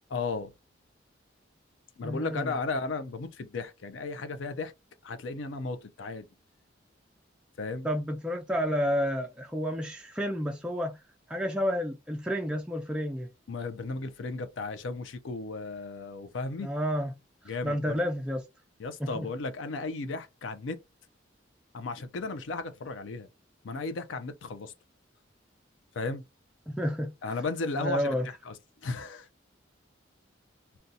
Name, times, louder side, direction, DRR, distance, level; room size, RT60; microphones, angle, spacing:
voice 1, 0.1-0.5 2.0-4.7 5.0-6.2 7.6-7.9 13.5-16.7 17.5-18.0 18.8-20.8 21.7-23.3 23.6-24.7 25.9-26.2 27.2-28.5 28.8-29.3, left 3 dB, 80° left, 0.5 m, -35 dB
voice 2, 2.0-2.5 7.8-11.0 11.3-13.3 16.6-17.2 17.6-18.4 19.0-19.3 26.7-27.1 27.8-28.3, equal, 5° right, 0.3 m, -30 dB
2.7 x 2.2 x 3.8 m
head